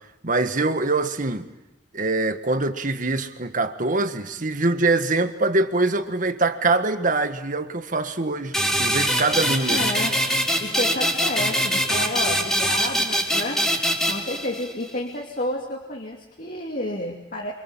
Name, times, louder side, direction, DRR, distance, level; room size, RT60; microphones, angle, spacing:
voice 1, 0.2-1.5 1.9-9.9, right 3 dB, 45° right, 1.7 m, -23 dB
sound 1, 8.5-14.9, equal, ahead, 4.5 m, -23 dB
voice 2, 9.7-10.3 10.6-13.7 14.1-17.5, left 1 dB, 50° left, 2.8 m, -30 dB
29.0 x 26.5 x 7.5 m
head